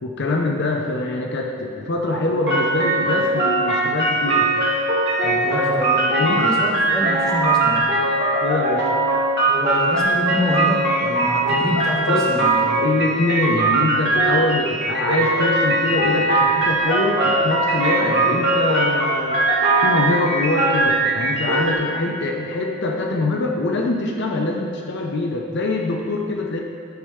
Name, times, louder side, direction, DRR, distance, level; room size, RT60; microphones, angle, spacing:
voice 1, 0.0-4.5 5.5-6.5 8.4-8.9 12.1-12.3 12.8-19.5 19.8-26.6, left 2 dB, 55° left, 1 dB, 0.6 m, -24 dB
sound 1, 2.4-21.7, right 2 dB, 55° right, 1.7 m, -20 dB
voice 2, 5.2-7.8 9.5-12.9 18.0-18.4, equal, 5° left, -5 dB, 1.1 m, -27 dB
10.5 x 5.4 x 3.5 m, 2.4 s
head